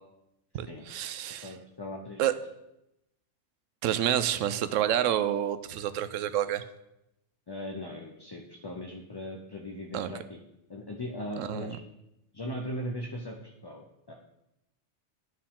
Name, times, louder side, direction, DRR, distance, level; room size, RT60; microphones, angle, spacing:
voice 1, 0.5-1.5 2.2-2.3 3.8-6.6 9.9-10.1 11.4-11.8, right 11 dB, 80° right, 12 dB, 0.9 m, -28 dB
voice 2, 1.4-2.2 7.5-10.4 10.7-11.8 12.3-14.1, left 1 dB, 30° left, 0 dB, 0.4 m, -39 dB
13.0 x 4.6 x 3.7 m, 0.87 s
omnidirectional pair, 1.3 m